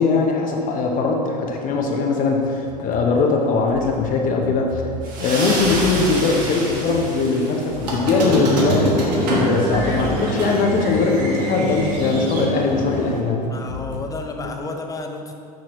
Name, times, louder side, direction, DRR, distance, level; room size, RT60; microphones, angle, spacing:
voice 1, 0.0-4.8 5.2-13.5, left 4 dB, 40° left, 1 dB, 0.9 m, -20 dB
sound 1, 2.3-14.7, left 6 dB, 80° left, 0.5 m, -36 dB
sound 2, 5.0-8.1, right 2 dB, 40° right, 1.5 m, -29 dB
Squeak, 7.8-13.2, right 1 dB, 75° right, 1.2 m, -24 dB
voice 2, 13.5-15.3, left 2 dB, 15° left, 4 dB, 0.6 m, -31 dB
8.5 x 4.2 x 3.1 m, 2.5 s
hypercardioid pair, 85°, 21 cm